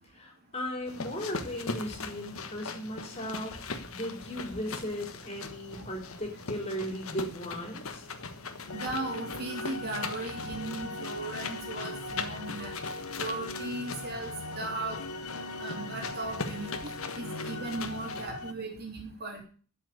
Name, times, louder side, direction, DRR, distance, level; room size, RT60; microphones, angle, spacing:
voice 1, 0.2-3.5 3.9-8.0, equal, 30° left, 1 dB, 4.3 m, -37 dB
sound 1, 0.9-18.3, left 4 dB, 70° left, 1.4 m, -41 dB
sound 2, 8.7-18.5, left 2 dB, 90° left, 1.1 m, -40 dB
voice 2, 8.7-12.7 13.2-15.0 15.6-16.7 17.2-19.4, right 2 dB, 45° right, 2 dB, 3.1 m, -37 dB
12.5 x 6.0 x 8.2 m, 0.41 s
head